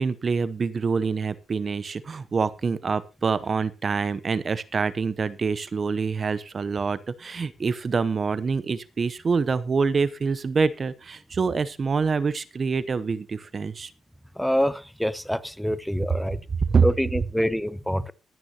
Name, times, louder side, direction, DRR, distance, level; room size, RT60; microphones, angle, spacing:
voice 1, 0.0-13.9 16.7-16.9 17.2-17.3, right 5 dB, 40° right, 0.8 m, -26 dB
voice 2, 14.4-16.4 16.8-18.1, equal, ahead, 0.7 m, -26 dB
22.5 x 9.4 x 2.9 m
cardioid pair, 90°, 0 cm